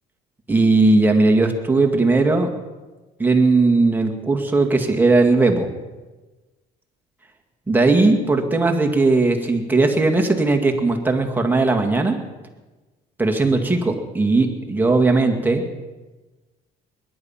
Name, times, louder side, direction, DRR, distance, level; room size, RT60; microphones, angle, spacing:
voice 1, 0.5-2.5 3.2-5.7 7.7-12.2 13.2-15.6, right 3 dB, 10° right, 2 dB, 2.0 m, -18 dB
22.0 x 10.5 x 5.7 m, 1.2 s
cardioid pair, 110°, 17 cm